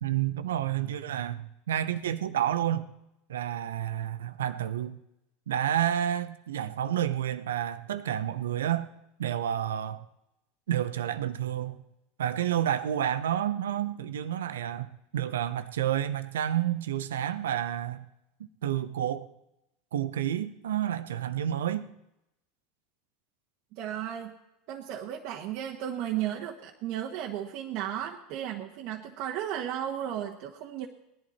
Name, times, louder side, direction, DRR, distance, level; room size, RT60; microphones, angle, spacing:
voice 1, 0.0-2.9 3.3-5.0 5.5-8.9 9.2-10.0 10.7-11.8 12.2-18.1 18.6-19.3 19.9-21.9, right 11 dB, 85° right, 12 dB, 0.8 m, -30 dB
voice 2, 23.7-24.3 24.7-30.9, right 11 dB, 60° right, 0 dB, 1.3 m, -34 dB
18.0 x 11.0 x 4.3 m, 0.87 s
hypercardioid pair, 95°, 0 cm